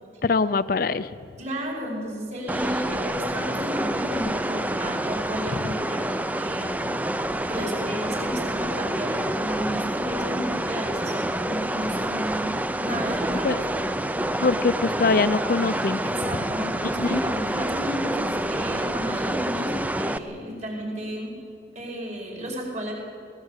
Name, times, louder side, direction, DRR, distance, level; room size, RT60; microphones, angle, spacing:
voice 1, 0.2-1.1 13.4-13.6 14.4-16.0 17.0-17.2, left 4 dB, 50° left, 14 dB, 0.5 m, -23 dB
voice 2, 1.4-6.9 7.5-12.5 12.8-13.6 16.0-21.3 21.7-22.9, equal, 40° right, -2 dB, 5.2 m, -33 dB
sound 1, 2.5-20.2, right 1 dB, 10° right, 0.5 m, -28 dB
20.5 x 17.5 x 8.3 m, 2.5 s
head